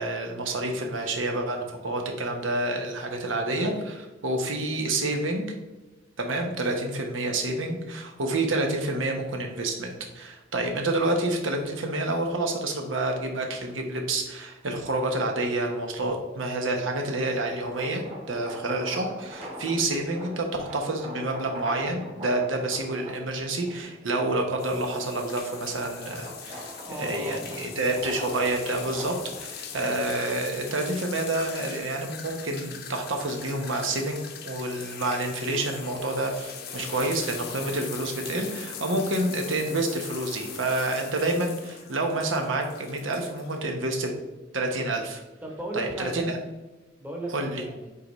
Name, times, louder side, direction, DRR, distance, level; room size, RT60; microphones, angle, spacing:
voice 1, 0.0-5.6 6.2-34.2 34.4-44.1 44.5-45.2 45.7-46.4 47.3-47.6, right 2 dB, 85° right, 3 dB, 1.1 m, -28 dB
sound 1, 17.6-24.1 24.6-31.8, equal, 35° right, 1.4 m, -42 dB
sound 2, 24.6-43.6, left 7 dB, 55° left, 0.7 m, -41 dB
voice 2, 26.8-27.8 36.8-37.2 45.4-46.3 47.0-47.9, right 1 dB, 10° right, -1 dB, 1.0 m, -37 dB
8.4 x 4.0 x 3.1 m, 1.1 s
head